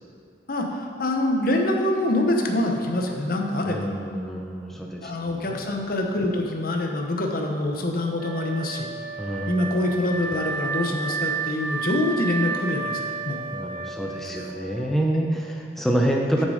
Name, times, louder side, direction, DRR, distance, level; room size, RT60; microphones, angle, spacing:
voice 1, 0.5-3.8 5.0-8.9 9.5-13.4 14.4-14.5 15.3-15.4, left 1 dB, 50° left, 2 dB, 0.8 m, -25 dB
voice 2, 3.6-5.1 5.5-5.6 9.2-9.7 13.5-16.4, right 1 dB, ahead, 0 dB, 0.6 m, -27 dB
Wind instrument woodwind instrument, 8.2-15.2, right 5 dB, 50° right, 1.0 m, -32 dB
6.6 x 6.5 x 5.0 m, 2.4 s
head